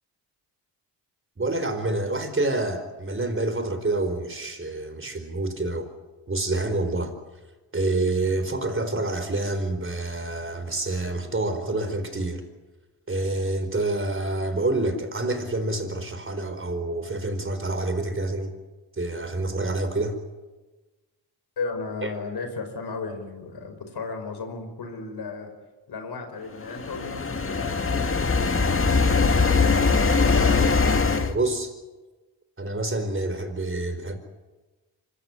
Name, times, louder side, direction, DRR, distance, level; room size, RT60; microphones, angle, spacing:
voice 1, 1.4-5.9 6.3-7.1 7.7-12.4 13.1-18.5 18.9-20.2 22.0-22.1 31.2-31.7 32.6-34.2, right 2 dB, 30° right, 9 dB, 4.6 m, -27 dB
voice 2, 21.6-25.5 25.9-30.8, left 4 dB, 60° left, 5 dB, 5.3 m, -35 dB
sound 1, 26.6-31.3, left 4 dB, 30° left, 2.0 m, -21 dB
25.5 x 14.5 x 9.8 m, 1.2 s
supercardioid pair, 55°, 44 cm